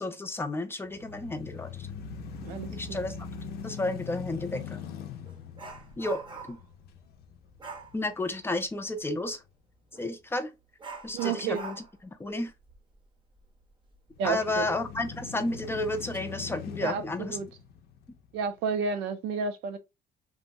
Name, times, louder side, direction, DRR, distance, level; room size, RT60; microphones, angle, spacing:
voice 1, 0.0-1.9 2.7-3.1 3.6-4.8 6.0-6.2 6.5-6.6 7.9-9.4 10.0-10.5 11.0-11.8 12.0-12.5 14.2-17.4, left 2 dB, 15° left, 0.4 m, -32 dB
sound 1, 0.9-9.0 9.5-9.6 14.1-18.6, left 7 dB, 70° left, 0.5 m, -42 dB
voice 2, 2.4-3.0 11.1-11.7 14.2-14.7 16.8-17.5 18.3-19.8, right 6 dB, 90° right, 0.6 m, -31 dB
Dog, 5.2-6.7 7.6-8.0 9.9-10.1 10.8-14.1 14.4-14.5 15.0-15.1 15.8-16.2 16.6-16.8, right 3 dB, 30° right, 0.7 m, -44 dB
3.0 x 2.2 x 2.6 m
cardioid pair, 110°, 17 cm